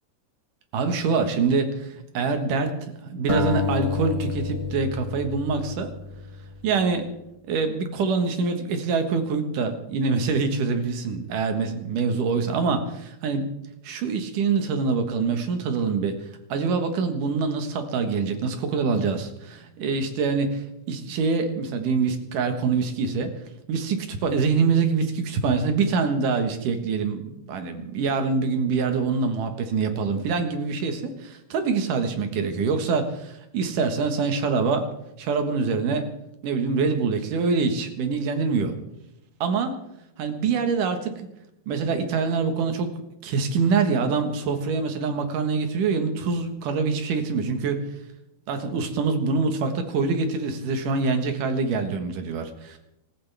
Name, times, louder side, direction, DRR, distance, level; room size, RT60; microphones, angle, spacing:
voice 1, 0.7-2.7 3.0-5.9 6.6-7.1 7.5-13.5 13.8-23.3 23.7-34.9 35.2-36.1 36.4-38.7 39.4-39.8 40.2-41.3 41.7-42.9 43.2-47.8 48.5-52.8, right 4 dB, 80° right, 6 dB, 3.1 m, -25 dB
sound 1, 3.3-6.5, left 4 dB, 30° right, 0.5 m, -29 dB
26.5 x 14.0 x 3.5 m, 0.84 s
omnidirectional pair, 3.6 m